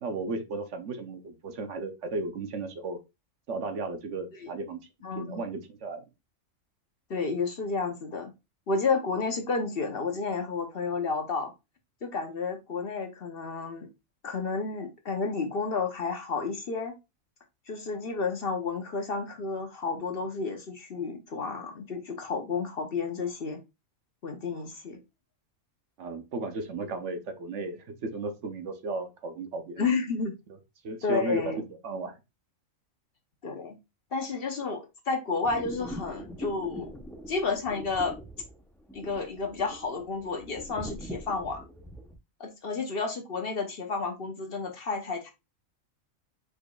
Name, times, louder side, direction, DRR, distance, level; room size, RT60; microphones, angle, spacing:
voice 1, 0.0-3.0 3.5-4.8 5.1-6.0 26.0-29.9 30.8-31.4 31.8-32.2, right 3 dB, 65° right, 7 dB, 1.1 m, -35 dB
voice 2, 5.0-5.4 7.1-8.3 8.7-11.5 12.0-13.9 14.2-16.9 17.7-23.6 24.2-25.0 29.8-30.3 31.0-31.6 33.4-33.8 34.1-36.9 37.3-38.2 38.9-41.6 42.4-45.3, left 4 dB, 50° left, 4 dB, 0.9 m, -31 dB
sound 1, 35.4-42.2, equal, 5° left, 0.3 m, -42 dB
5.0 x 4.5 x 2.3 m, 0.24 s
omnidirectional pair, 1.4 m